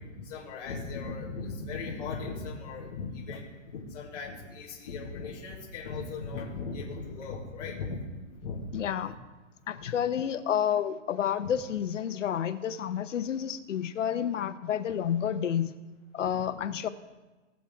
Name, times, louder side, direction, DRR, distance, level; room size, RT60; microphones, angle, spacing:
voice 1, 0.2-8.0 8.4-8.7 9.1-9.2 16.2-16.4, left 4 dB, 35° left, -5 dB, 1.9 m, -38 dB
voice 2, 8.7-9.1 9.7-15.8 16.1-16.9, left 9 dB, 75° left, 11 dB, 0.9 m, -30 dB
19.5 x 7.4 x 3.6 m, 1.2 s
hypercardioid pair, 175°, 37 cm